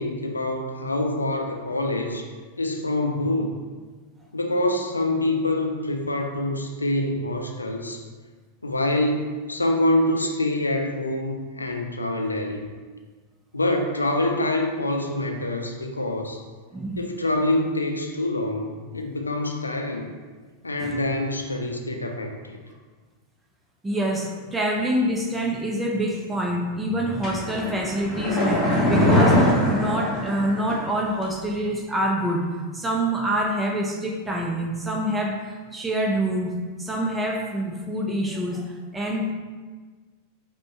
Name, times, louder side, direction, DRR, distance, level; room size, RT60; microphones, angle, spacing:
voice 1, 0.0-2.2 2.6-3.6 4.3-8.0 8.6-12.7 13.5-16.4 17.0-20.1 20.6-22.6, left 1 dB, 80° left, 3 dB, 0.4 m, -25 dB
voice 2, 16.7-17.0 20.8-21.0 23.8-36.5 36.8-39.3, right 1 dB, 10° right, 0 dB, 0.6 m, -26 dB
sound 1, 27.2-30.9 31.2-31.3, left 1 dB, 10° left, 1.3 m, -21 dB
5.2 x 2.3 x 4.2 m, 1.4 s
figure-of-eight pair, 90°, 0 cm